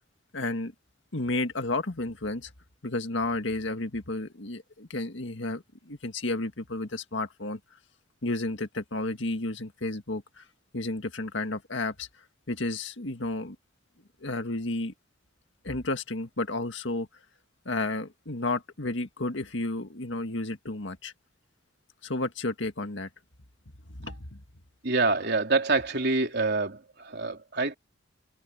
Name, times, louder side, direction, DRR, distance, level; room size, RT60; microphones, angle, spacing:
voice 1, 0.3-0.7 1.1-2.5 2.8-7.6 8.2-10.4 10.7-12.1 12.5-13.6 14.2-14.9 15.6-17.1 17.7-21.1 22.0-23.1 23.9-24.4, left 2 dB, 70° left, 1.9 m, -32 dB
voice 2, 24.8-27.8, right 3 dB, 60° right, 3.7 m, -26 dB
head